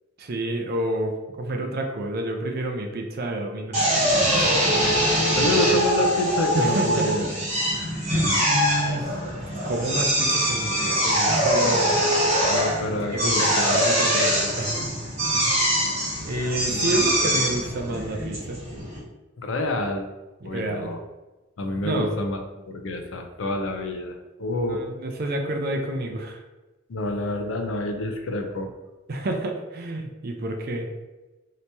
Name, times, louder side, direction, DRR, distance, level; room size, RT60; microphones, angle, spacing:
voice 1, 0.2-3.9 4.3-4.6 6.5-7.1 7.6-7.8 8.4-9.1 9.6-11.8 13.1-14.8 15.3-15.6 16.2-18.6 20.4-20.9 21.8-22.1 24.7-26.4 29.1-30.9, right 1 dB, 50° right, 3 dB, 0.5 m, -29 dB
Drill, 3.7-19.0, equal, 35° right, 1.1 m, -23 dB
voice 2, 5.4-7.3 12.5-13.8 14.1-14.5 16.7-17.4 19.4-20.1 20.4-21.0 21.6-22.4 22.7-24.8 26.9-28.7, left 2 dB, 70° left, 4 dB, 0.5 m, -28 dB
2.9 x 2.7 x 3.3 m, 1.1 s
head